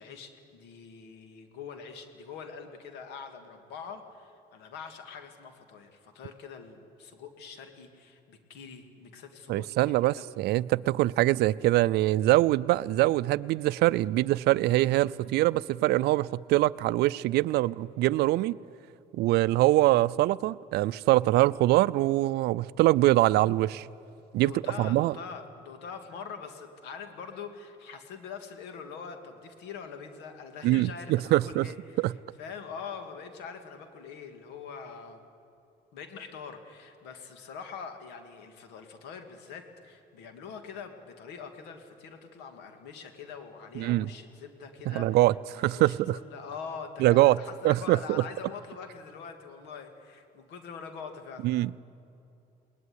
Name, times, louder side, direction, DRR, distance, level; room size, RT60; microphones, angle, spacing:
voice 1, 0.0-10.3 24.4-35.2 35.9-45.2 45.5-51.5, left 6 dB, 85° left, 2.4 m, -44 dB
voice 2, 9.5-18.6 19.2-23.9 24.3-24.5 24.8-25.1 30.6-31.7 32.0-32.1 43.8-44.1 44.9-46.2 47.0-47.4 47.6-48.2 51.4-51.7, right 17 dB, 75° right, 0.4 m, -24 dB
20.5 x 19.5 x 9.7 m
cardioid pair, 110°, 17 cm